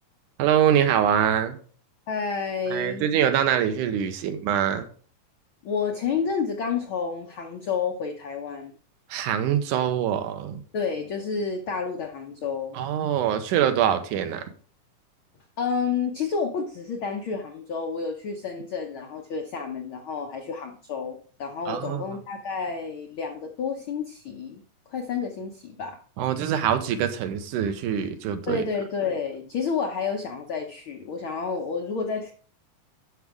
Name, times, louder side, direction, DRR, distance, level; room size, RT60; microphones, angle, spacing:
voice 1, 0.4-1.6 2.7-4.9 9.1-10.6 12.7-14.4 21.7-22.0 26.2-28.6, right 9 dB, 80° right, 9 dB, 2.3 m, -24 dB
voice 2, 2.1-3.0 5.6-8.7 10.7-12.8 15.6-24.6 24.9-26.0 28.5-32.3, left 5 dB, 90° left, 3 dB, 1.1 m, -30 dB
12.0 x 6.1 x 3.5 m, 0.43 s
omnidirectional pair, 3.7 m